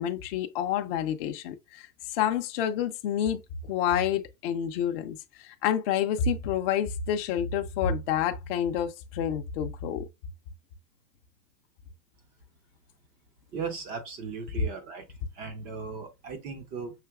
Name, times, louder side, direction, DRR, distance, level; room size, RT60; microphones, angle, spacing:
voice 1, 0.0-10.1 14.5-14.7, left 8 dB, 35° left, 0.5 m, -29 dB
voice 2, 13.5-15.1 15.4-16.9, right 5 dB, 20° right, 0.4 m, -37 dB
5.7 x 2.8 x 2.3 m
hypercardioid pair, 120°, 50 cm